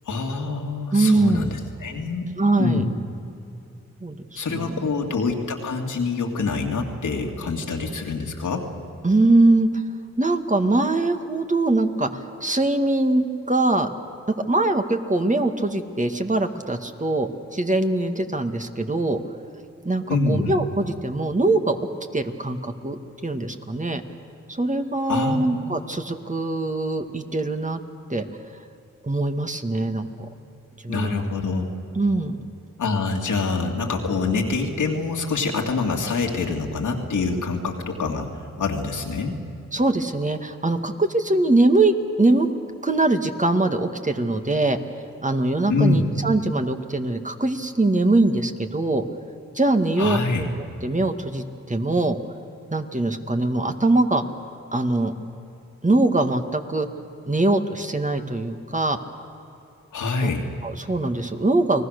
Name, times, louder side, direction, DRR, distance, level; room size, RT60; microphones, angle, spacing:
voice 1, 0.1-2.2 2.6-2.9 4.4-8.6 20.1-20.5 25.1-25.8 30.9-31.7 32.8-38.3 38.6-39.3 45.7-46.1 50.0-50.5 59.9-60.4, left 3 dB, 75° left, 2 dB, 2.5 m, -25 dB
voice 2, 0.9-1.5 2.4-2.9 4.0-4.8 9.0-9.8 10.2-13.9 14.4-19.2 19.9-21.8 22.1-24.0 24.5-27.8 28.1-28.3 29.0-30.3 30.8-31.2 32.0-32.4 39.7-42.5 42.8-44.8 45.2-49.0 49.5-52.2 52.7-54.2 54.7-55.1 55.8-56.9 57.3-59.0 60.2-60.3 60.6-61.9, right 2 dB, 25° right, 6 dB, 1.9 m, -22 dB
30.0 x 18.5 x 6.7 m, 2.6 s
cardioid pair, 45°, 31 cm